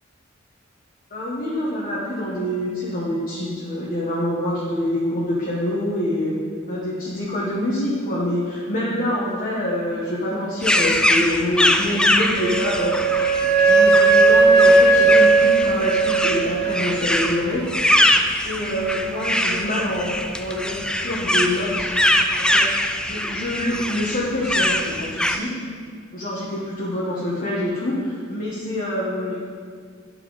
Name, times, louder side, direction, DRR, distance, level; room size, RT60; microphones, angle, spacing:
voice 1, 1.1-6.3 6.7-13.0 13.7-17.6 18.4-21.9 22.4-22.7 23.0-25.5 26.1-29.4, left 1 dB, 45° left, -6 dB, 1.3 m, -26 dB
sound 1, 10.6-25.4, left 1 dB, 5° left, 0.3 m, -23 dB
Wind instrument woodwind instrument, 12.4-17.0, right 3 dB, 55° right, 0.8 m, -16 dB
11.0 x 6.0 x 4.0 m, 2.1 s
head